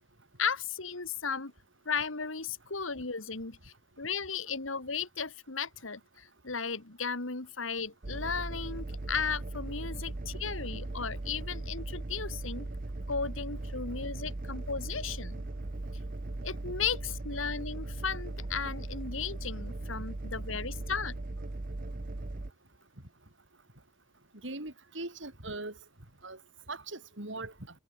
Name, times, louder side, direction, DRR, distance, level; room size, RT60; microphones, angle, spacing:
voice 1, 0.4-1.5 1.9-12.7 13.1-15.4 16.4-21.2, left 6 dB, 90° left, 2.3 m, -35 dB
sound 1, 8.0-22.5, right 2 dB, 45° right, 0.9 m, -38 dB
voice 2, 24.4-25.7 26.2-26.4 26.7-27.5, right 2 dB, 65° right, 4.6 m, -40 dB
head